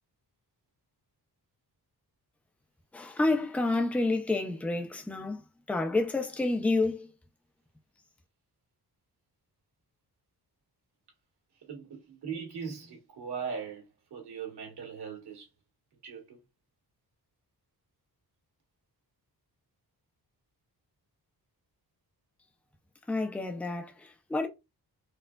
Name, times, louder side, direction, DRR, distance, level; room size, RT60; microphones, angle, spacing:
voice 1, 2.9-7.1 23.1-24.5, left 2 dB, 5° left, 0.4 m, -29 dB
voice 2, 11.6-13.8 14.1-15.5 16.0-16.4, right 6 dB, 80° right, 1.7 m, -39 dB
4.4 x 2.3 x 2.2 m
wide cardioid pair, 170°, 39 cm